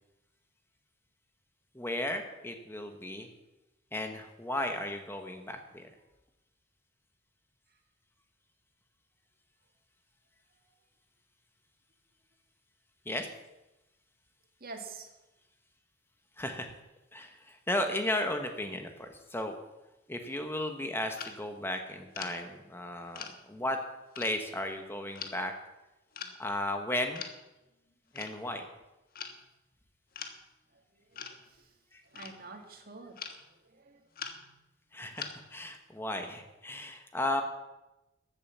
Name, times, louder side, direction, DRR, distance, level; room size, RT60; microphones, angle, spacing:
voice 1, 1.7-3.3 3.9-5.9 13.0-13.3 16.4-16.7 17.1-19.5 20.1-23.8 24.1-25.5 26.4-27.2 28.1-28.7 31.9-32.0 34.9-37.4, left 1 dB, 10° left, 5 dB, 1.1 m, -35 dB
voice 2, 14.6-15.1 30.9-31.7 32.1-33.2 33.6-34.0, right 3 dB, 50° right, 4 dB, 2.1 m, -47 dB
sound 1, 21.2-21.4 22.1-22.4 23.1-23.4 24.1-24.3 25.1-25.4 26.1-26.4 27.1-27.4 28.1-28.3 29.1-29.4 30.1-30.4 31.1-31.4 32.1-32.5 33.1-33.4 34.1-34.6 35.1-35.5, left 7 dB, 50° left, 1.4 m, -42 dB
14.0 x 8.9 x 7.3 m, 0.99 s
head